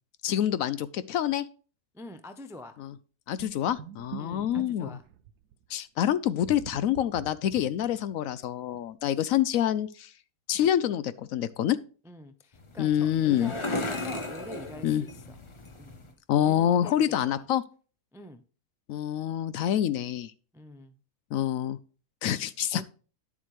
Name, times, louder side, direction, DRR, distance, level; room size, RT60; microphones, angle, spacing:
voice 1, 0.2-1.5 2.8-2.9 3.3-5.0 5.7-10.1 10.5-11.8 12.8-13.5 14.8-15.1 16.3-17.6 18.9-20.3 21.3-21.8 22.2-22.8, left 10 dB, 70° left, 0.9 m, -27 dB
voice 2, 1.9-2.8 4.2-5.0 12.0-15.4 15.8-15.9 16.5-16.9 17.3-17.4 18.1-18.4 20.5-21.0 22.7-22.8, left 1 dB, 5° right, 0.3 m, -45 dB
sound 1, 3.4-5.6 6.4-8.3 8.7-8.8 9.2-9.3, right 9 dB, 85° right, 1.2 m, -44 dB
sound 2, 12.5-16.1, left 2 dB, 25° left, 0.8 m, -36 dB
10.5 x 7.3 x 3.2 m
omnidirectional pair, 1.6 m